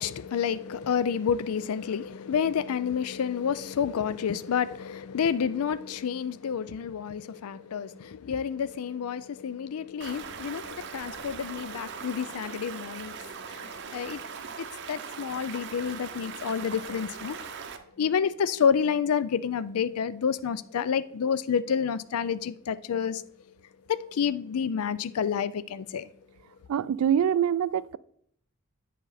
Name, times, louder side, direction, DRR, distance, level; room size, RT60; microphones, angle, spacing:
voice 1, 0.0-14.3 14.6-17.4 18.0-23.2 23.9-26.1, left 7 dB, 80° left, 0.4 m, -29 dB
Stream, 10.0-17.8, right 6 dB, 55° right, 0.7 m, -40 dB
voice 2, 26.7-28.0, right 9 dB, 75° right, 0.3 m, -24 dB
9.0 x 5.0 x 4.1 m
head